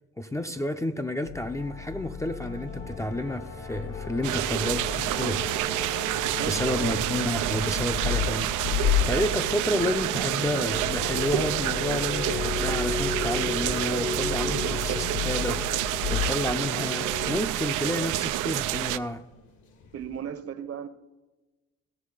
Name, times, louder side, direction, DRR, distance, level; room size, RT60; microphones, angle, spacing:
voice 1, 0.2-5.4 6.5-19.2, left 1 dB, 10° left, 0.5 m, -31 dB
sound 1, 1.3-17.4, left 7 dB, 45° left, 0.8 m, -33 dB
sound 2, 1.6-20.3, equal, 75° left, 1.6 m, -42 dB
sound 3, 4.2-19.0, right 14 dB, 90° right, 0.5 m, -28 dB
voice 2, 6.2-7.0 19.9-20.9, right 8 dB, 55° right, 0.9 m, -35 dB
16.5 x 6.3 x 4.9 m
cardioid pair, 90°, 30 cm